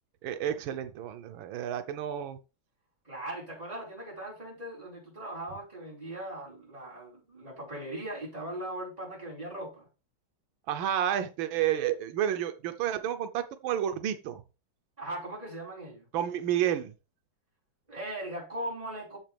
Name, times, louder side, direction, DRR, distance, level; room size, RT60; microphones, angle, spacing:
voice 1, 0.2-2.4 10.7-14.4 16.1-16.9, right 10 dB, 90° right, 1.5 m, -30 dB
voice 2, 3.0-9.9 15.0-16.1 17.9-19.2, right 1 dB, 20° right, 5.1 m, -39 dB
9.1 x 7.4 x 3.4 m
omnidirectional pair, 2.1 m